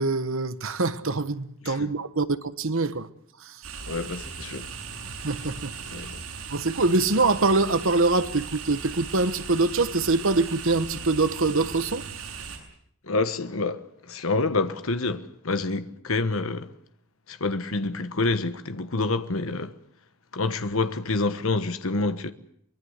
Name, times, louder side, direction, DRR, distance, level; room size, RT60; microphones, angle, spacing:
voice 1, 0.0-3.1 3.4-3.6 5.0-5.7 6.5-12.0, right 3 dB, 60° right, 1.2 m, -24 dB
sound 1, 3.6-12.6, right 5 dB, 90° right, 7.9 m, -38 dB
voice 2, 3.8-4.7 5.9-6.2 13.0-16.7 17.3-19.8 20.3-22.3, left 3 dB, 65° left, 1.3 m, -27 dB
24.0 x 21.5 x 8.1 m
head